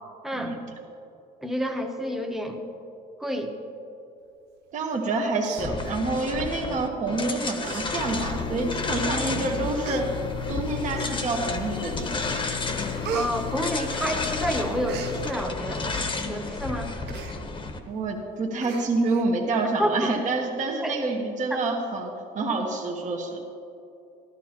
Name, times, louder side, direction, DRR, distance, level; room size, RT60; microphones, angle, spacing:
voice 1, 0.2-0.5 1.4-2.6 3.2-3.5 13.1-15.8 16.3-16.9 19.8-19.9 20.8-21.0 21.5-21.6, equal, ahead, 3 dB, 1.0 m, -29 dB
voice 2, 4.7-10.1 10.5-12.1 17.9-23.4, right 3 dB, 45° right, 0 dB, 1.3 m, -27 dB
Human voice, 4.9-5.1 5.4-6.3 7.1-7.2 7.6-7.9 8.2-8.3 9.1-9.2 9.8-10.0 10.9-11.5 12.0-12.3 12.6-14.3 14.6-15.1 17.1-17.4 17.7-17.8 18.1-18.2 18.6-19.2 19.6-19.7, right 7 dB, 80° right, 0.7 m, -37 dB
sound 1, 5.6-17.8, left 3 dB, 30° left, 1.0 m, -32 dB
sound 2, 7.9-16.6, left 9 dB, 75° left, 0.4 m, -36 dB
13.5 x 12.0 x 3.0 m, 2.7 s
cardioid pair, 110°, 17 cm